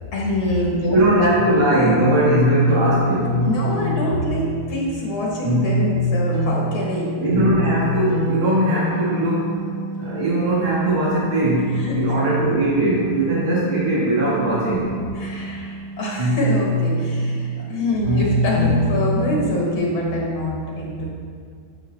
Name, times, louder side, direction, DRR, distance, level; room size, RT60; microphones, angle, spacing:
voice 1, 0.1-1.3 3.4-7.2 11.7-12.0 15.1-21.0, left 1 dB, 80° left, -3 dB, 2.2 m, -25 dB
voice 2, 0.9-3.4 7.2-9.5 10.0-11.6 11.9-14.9, right 1 dB, 90° right, -7 dB, 2.6 m, -20 dB
sound 1, 1.4-19.8, equal, 20° right, 1.1 m, -24 dB
8.6 x 7.5 x 3.3 m, 2.1 s
omnidirectional pair, 2.3 m